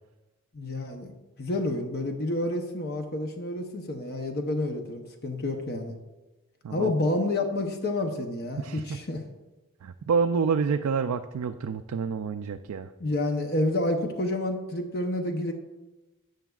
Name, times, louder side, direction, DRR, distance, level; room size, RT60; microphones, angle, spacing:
voice 1, 0.5-1.1 1.4-6.0 6.7-9.2 13.0-15.5, left 2 dB, 45° left, 4 dB, 0.7 m, -29 dB
voice 2, 8.6-9.0 9.8-12.9, right 5 dB, 90° right, 6 dB, 0.4 m, -28 dB
13.0 x 7.8 x 2.4 m, 1.1 s
head